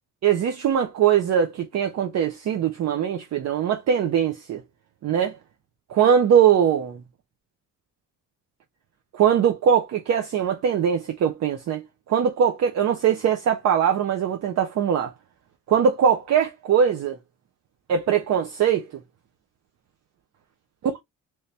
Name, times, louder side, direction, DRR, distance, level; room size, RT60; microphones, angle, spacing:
voice 1, 0.2-4.6 5.0-5.4 5.9-7.0 9.1-15.1 15.7-17.2 17.9-18.8 20.8-21.0, right 8 dB, 60° right, 0.6 m, -21 dB
3.1 x 2.8 x 3.2 m
cardioid pair, 110°, 31 cm